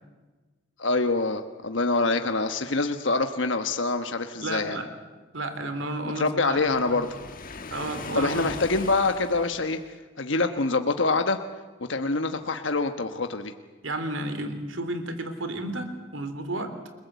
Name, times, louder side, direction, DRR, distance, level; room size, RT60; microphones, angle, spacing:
voice 1, 0.8-4.8 6.1-7.2 8.1-11.4 11.9-13.5, left 3 dB, 70° left, 7 dB, 1.2 m, -25 dB
voice 2, 4.4-4.9 5.3-7.0 7.7-8.5 13.8-16.7, right 2 dB, 80° right, 9 dB, 3.4 m, -32 dB
Waves surf, 6.4-9.9, left 3 dB, 45° left, 1.6 m, -40 dB
29.5 x 21.0 x 8.2 m, 1.3 s
head